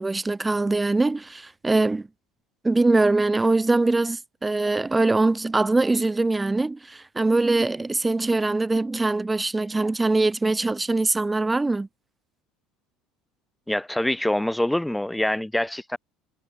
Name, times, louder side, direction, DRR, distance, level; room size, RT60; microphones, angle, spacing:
voice 1, 0.0-2.1 2.6-11.9, right 2 dB, 10° right, 1.6 m, -22 dB
voice 2, 13.7-16.0, left 1 dB, 5° left, 1.9 m, -25 dB
supercardioid pair, 110°, 0 cm